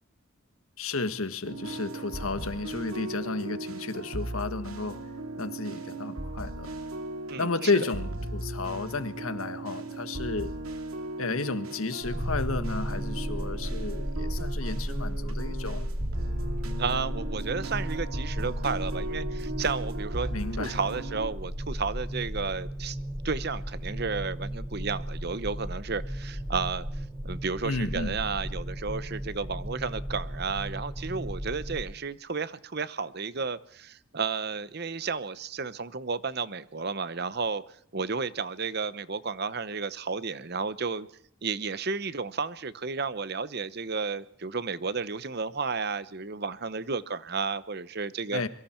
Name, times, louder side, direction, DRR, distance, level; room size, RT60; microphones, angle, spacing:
voice 1, 0.8-5.0 5.4-6.7 7.4-10.5 11.2-15.9 20.3-20.8 27.6-28.2 48.3-48.5, left 3 dB, 80° left, 1.5 m, -32 dB
sound 1, 1.4-21.3, right 1 dB, 80° right, 2.6 m, -37 dB
voice 2, 7.3-7.9 16.8-20.3 20.6-23.0 23.2-26.8 27.2-37.6 37.9-41.1 41.4-48.4, right 4 dB, 50° right, 0.9 m, -32 dB
sound 2, 12.0-31.8, equal, 15° right, 4.6 m, -34 dB
26.5 x 23.0 x 4.5 m
head